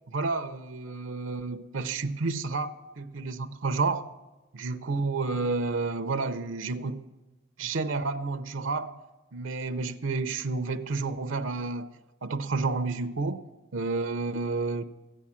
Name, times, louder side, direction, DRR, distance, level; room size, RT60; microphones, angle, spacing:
voice 1, 0.1-4.1 4.5-7.0 7.6-9.0 9.3-12.0 12.2-13.4 13.7-14.8, right 3 dB, 70° right, 10 dB, 0.6 m, -30 dB
14.0 x 9.6 x 7.3 m, 1.1 s
head